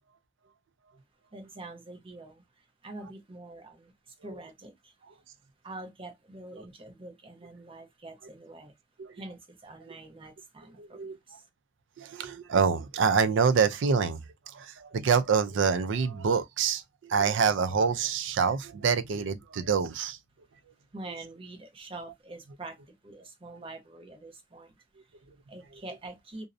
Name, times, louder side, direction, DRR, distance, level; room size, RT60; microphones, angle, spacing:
voice 1, 1.3-4.9 5.6-8.7 9.1-11.4 20.9-26.5, right 2 dB, 30° right, 0.6 m, -45 dB
voice 2, 10.8-11.2 12.0-20.2, right 6 dB, 70° right, 0.4 m, -26 dB
2.5 x 2.0 x 2.4 m
head